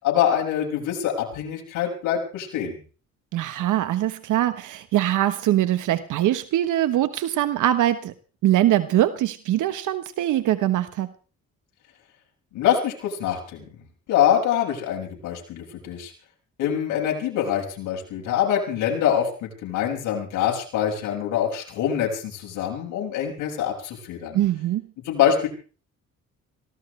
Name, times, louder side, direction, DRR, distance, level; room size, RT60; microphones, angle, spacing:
voice 1, 0.0-2.8 12.5-13.7 14.1-16.1 16.6-24.4 25.0-25.5, left 9 dB, 90° left, 0 dB, 6.3 m, -24 dB
voice 2, 3.3-8.1 8.4-11.1 24.3-24.8, right 13 dB, 80° right, 11 dB, 1.2 m, -22 dB
24.0 x 18.0 x 3.3 m, 0.38 s
cardioid pair, 90°, 30 cm